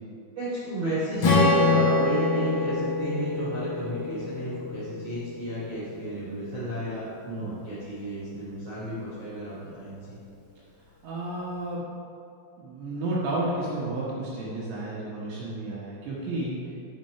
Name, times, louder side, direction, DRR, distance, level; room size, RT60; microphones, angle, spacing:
voice 1, 0.4-7.0 7.4-10.2, right 1 dB, 45° right, -11 dB, 2.5 m, -33 dB
Strum, 1.2-5.5, left 3 dB, 45° left, 2.5 m, -25 dB
voice 2, 11.0-11.8 12.6-16.6, right 2 dB, 70° right, -6 dB, 3.1 m, -31 dB
9.4 x 6.0 x 5.6 m, 2.6 s
omnidirectional pair, 5.6 m